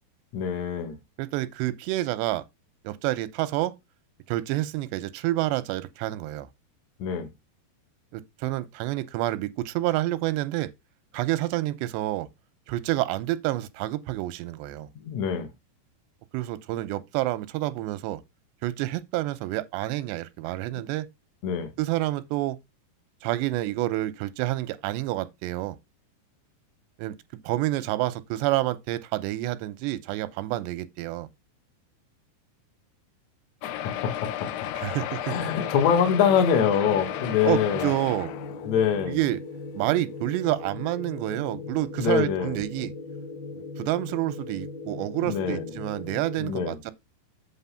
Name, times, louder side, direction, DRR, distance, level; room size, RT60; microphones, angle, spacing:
voice 1, 0.3-1.0 7.0-7.3 15.0-15.5 20.7-20.8 21.4-21.7 33.6-34.5 35.2-37.9 38.7-39.2 41.5-41.6 42.0-42.6 45.2-45.7 46.4-46.8, left 7 dB, 55° left, 2.2 m, -25 dB
voice 2, 1.2-2.4 2.8-3.7 4.3-6.5 8.1-10.7 11.1-12.3 12.7-14.9 16.3-18.2 18.6-21.1 21.8-22.6 23.2-25.8 27.0-27.2 27.4-31.3 34.8-35.4 37.4-38.3 39.1-39.4 39.7-42.9 43.5-46.9, right 16 dB, 90° right, 2.9 m, -28 dB
sound 1, 33.6-39.1 39.7-39.8 40.1-40.2 40.5-40.6, left 11 dB, 75° left, 2.2 m, -34 dB
sound 2, 35.3-46.4, left 3 dB, 35° left, 1.7 m, -39 dB
8.3 x 4.0 x 5.6 m
omnidirectional pair, 4.9 m